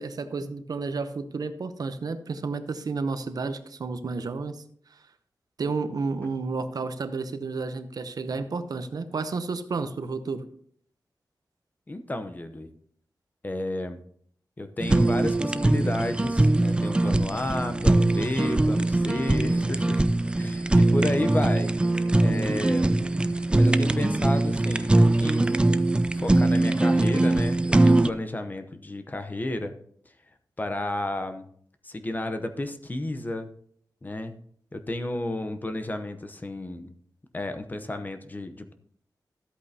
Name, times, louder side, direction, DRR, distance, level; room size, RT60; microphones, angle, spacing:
voice 1, 0.0-4.6 4.9-5.0 5.6-10.4 22.8-23.3, right 4 dB, 65° right, 10 dB, 0.7 m, -31 dB
voice 2, 11.9-12.7 13.4-14.0 14.6-20.0 20.4-21.7 22.2-22.9 23.5-25.6 26.1-29.7 30.6-31.5 31.8-33.5 34.0-34.4 34.7-36.9 37.3-38.7, left 1 dB, 25° left, 8 dB, 0.8 m, -32 dB
Fire, 14.8-28.1, right 2 dB, 15° right, 0.3 m, -22 dB
13.0 x 8.3 x 2.8 m, 0.62 s
wide cardioid pair, 135°, 7 cm